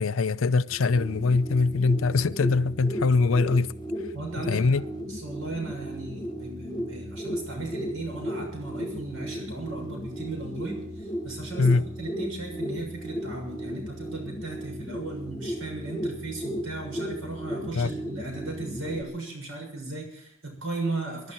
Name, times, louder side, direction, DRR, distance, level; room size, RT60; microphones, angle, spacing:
voice 1, 0.0-3.7 4.5-4.8 11.6-11.8 17.7-17.9, left 4 dB, 75° left, 0.6 m, -23 dB
sound 1, 0.6-19.0, equal, 20° left, 1.0 m, -35 dB
voice 2, 4.1-21.3, right 2 dB, 80° right, 6.6 m, -36 dB
22.0 x 12.0 x 4.5 m
head